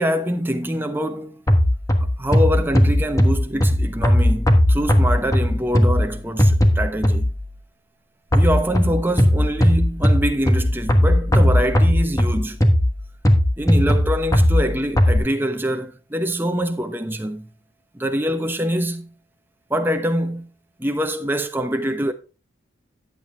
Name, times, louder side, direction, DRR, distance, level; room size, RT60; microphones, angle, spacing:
voice 1, 0.0-1.4 2.2-7.3 8.3-12.6 13.6-17.5 17.9-19.1 19.7-20.5 20.8-22.1, equal, 10° right, 0.9 m, -24 dB
sound 1, 1.5-7.5 8.3-15.2, equal, 15° left, 1.3 m, -18 dB
11.5 x 7.9 x 3.4 m
head